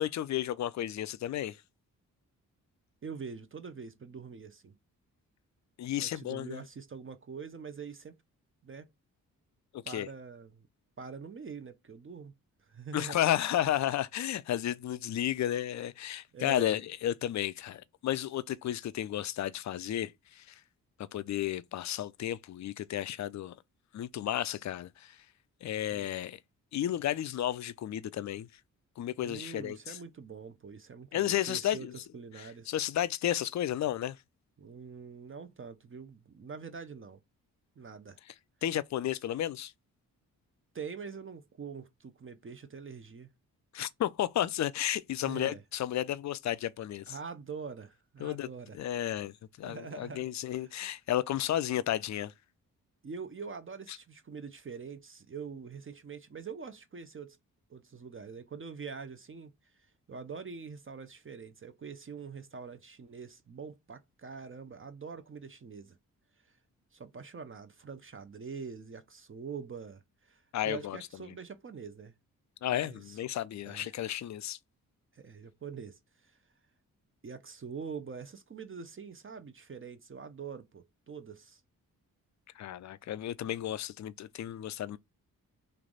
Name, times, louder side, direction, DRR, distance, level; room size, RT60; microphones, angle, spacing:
voice 1, 0.0-1.6 5.8-6.6 9.7-10.1 12.9-20.6 21.1-23.5 23.9-25.2 25.6-26.4 26.7-28.5 29.0-30.0 31.1-31.9 32.4-34.2 38.6-39.7 43.7-47.2 48.2-48.5 48.7-52.3 70.5-71.0 72.6-74.6 82.6-85.0, left 12 dB, 45° left, 0.4 m, -33 dB
voice 2, 3.0-4.8 6.0-8.2 8.6-8.9 9.9-10.7 11.0-12.3 12.7-13.2 16.3-16.8 25.9-26.1 29.2-31.9 32.1-32.7 34.6-37.2 37.8-38.2 40.7-43.3 45.2-45.6 47.1-48.8 49.6-50.8 53.0-57.4 57.7-59.5 60.1-66.0 66.9-72.1 72.7-73.2 73.7-73.9 75.1-76.4 77.2-81.6, right 5 dB, 35° right, 0.6 m, -44 dB
3.3 x 2.5 x 3.8 m
supercardioid pair, 45°, 38 cm